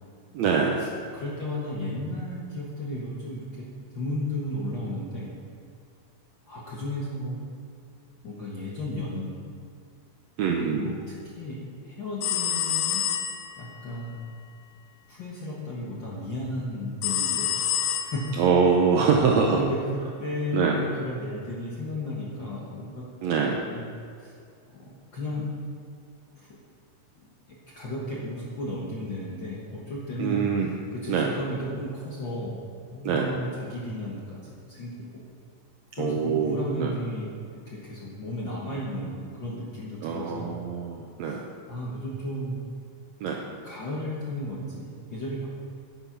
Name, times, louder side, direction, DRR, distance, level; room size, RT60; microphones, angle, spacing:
voice 1, 0.3-0.8 10.4-10.9 18.4-19.6 20.5-20.8 23.2-23.6 30.2-30.7 31.1-31.3 33.0-33.3 35.9-36.9 40.0-41.4 43.2-43.4, right 5 dB, 75° right, 1 dB, 1.6 m, -24 dB
voice 2, 1.1-3.4 3.9-5.3 6.5-7.4 8.2-9.5 10.6-11.0 11.4-13.0 13.6-14.3 15.1-17.5 18.0-18.4 19.5-19.8 20.2-23.0 23.6-23.9 24.2-24.3 24.7-25.6 26.3-26.5 27.2-30.4 30.9-32.6 32.9-34.9 36.0-37.3 37.7-40.6 41.3-41.4 41.7-42.6 43.6-45.5, left 1 dB, 55° left, -5 dB, 1.4 m, -34 dB
sound 1, 12.2-13.7 17.0-18.5, left 10 dB, 85° left, 2.5 m, -27 dB
9.5 x 8.6 x 5.8 m, 2.4 s
omnidirectional pair, 3.9 m